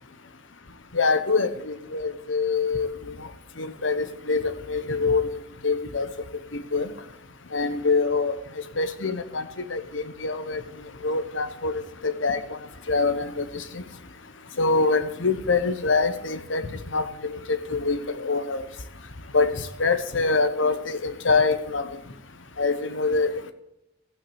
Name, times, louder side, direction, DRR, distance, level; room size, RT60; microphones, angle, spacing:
voice 1, 0.9-2.9 3.2-3.3 3.6-5.3 5.6-6.1 6.5-6.9 7.5-8.4 8.8-10.6 11.0-12.6 12.9-13.8 14.6-18.6 19.3-22.0 22.6-23.5, left 4 dB, 75° left, 11 dB, 1.0 m, -25 dB
15.0 x 5.9 x 7.0 m, 0.84 s
head